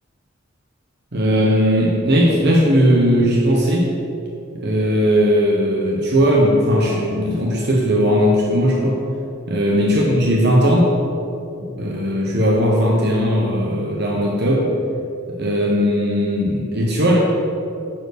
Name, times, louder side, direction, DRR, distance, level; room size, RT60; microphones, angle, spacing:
voice 1, 1.1-3.9 4.5-9.0 9.5-10.9 11.8-14.7 15.3-17.2, equal, 60° right, -2 dB, 1.1 m, -17 dB
9.8 x 4.5 x 6.7 m, 2.7 s
head